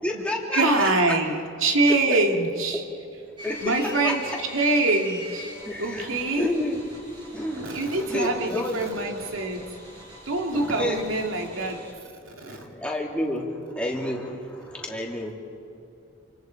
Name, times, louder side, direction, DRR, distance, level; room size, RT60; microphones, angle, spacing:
voice 1, 0.0-0.9 1.9-2.0 2.7-2.8 3.4-4.4 5.6-6.8 7.3-8.9 10.5-11.0 12.5-15.3, left 1 dB, 5° left, -2 dB, 2.9 m, -30 dB
voice 2, 0.5-2.8 3.6-4.2 4.5-5.5 5.8-6.6 7.6-9.8 10.3-11.8 12.3-12.6, right 2 dB, 80° right, 2 dB, 2.6 m, -24 dB
sound 1, 3.4-11.9, left 1 dB, 25° right, 5.2 m, -43 dB
28.0 x 26.0 x 4.7 m, 2.6 s
head